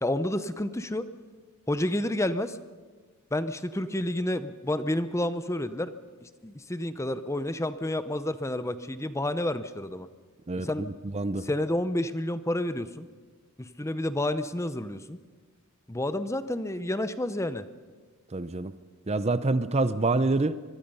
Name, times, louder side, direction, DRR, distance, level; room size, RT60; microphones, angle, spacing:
voice 1, 0.0-1.1 1.7-2.6 3.3-5.9 6.2-10.1 10.6-10.9 11.4-13.1 13.6-15.2 15.9-17.7, left 1 dB, 15° left, 12 dB, 0.7 m, -30 dB
voice 2, 10.5-11.5 18.3-18.7 19.1-20.6, right 2 dB, 30° right, 14 dB, 0.6 m, -27 dB
24.5 x 22.5 x 5.5 m, 1.4 s
head